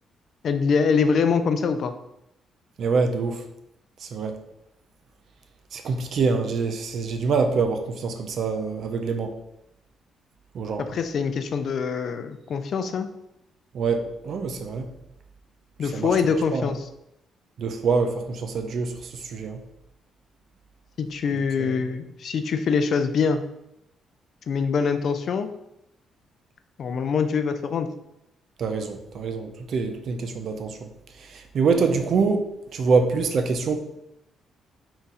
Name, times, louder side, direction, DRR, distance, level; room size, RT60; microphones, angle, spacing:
voice 1, 0.4-1.9 10.8-13.1 15.8-16.9 21.0-23.4 24.5-25.5 26.8-27.9, left 5 dB, 60° left, 9 dB, 0.4 m, -24 dB
voice 2, 2.8-3.4 4.0-4.4 5.7-9.3 10.5-10.8 13.7-14.9 15.9-16.1 16.5-16.7 17.6-18.9 19.2-19.6 21.3-21.8 28.6-30.8 31.3-32.5 32.7-33.8, right 4 dB, 60° right, 6 dB, 0.5 m, -25 dB
3.9 x 2.3 x 4.0 m, 0.84 s
cardioid pair, 90°, 0 cm